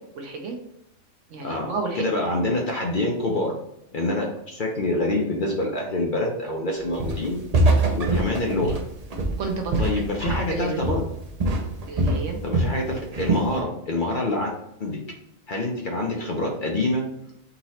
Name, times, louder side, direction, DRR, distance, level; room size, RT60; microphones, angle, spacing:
voice 1, 0.1-0.6 1.3-2.0 9.4-9.9 10.2-10.8 11.9-12.4, right 4 dB, 65° right, 3 dB, 1.1 m, -31 dB
voice 2, 2.0-3.5 3.9-7.4 7.9-8.8 9.8-11.0 12.4-14.5 14.8-15.0 15.5-17.0, left 2 dB, 45° left, -1 dB, 0.8 m, -26 dB
Walk footsteps, 7.0-7.3 7.5-10.6 10.8-11.1 11.4-12.8 13.1-13.5, right 2 dB, 50° right, 0.5 m, -23 dB
4.0 x 3.0 x 4.2 m, 0.79 s
omnidirectional pair, 1.4 m